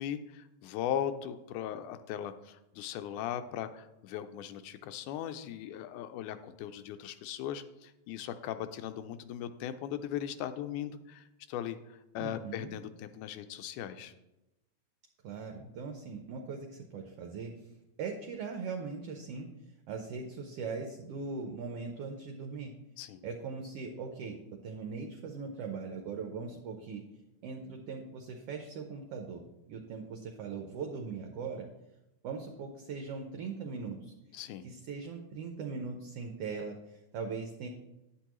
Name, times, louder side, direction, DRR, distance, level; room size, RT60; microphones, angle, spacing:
voice 1, 0.0-14.1 23.0-23.3 34.3-34.7, left 10 dB, 90° left, 9 dB, 2.1 m, -38 dB
voice 2, 12.2-12.7 15.2-17.5 18.0-19.5 19.9-22.7 23.2-24.3 24.6-27.0 27.4-31.7 32.2-34.1 34.6-37.7, right 5 dB, 70° right, 3 dB, 1.5 m, -40 dB
9.3 x 8.1 x 3.0 m, 0.94 s
omnidirectional pair, 3.4 m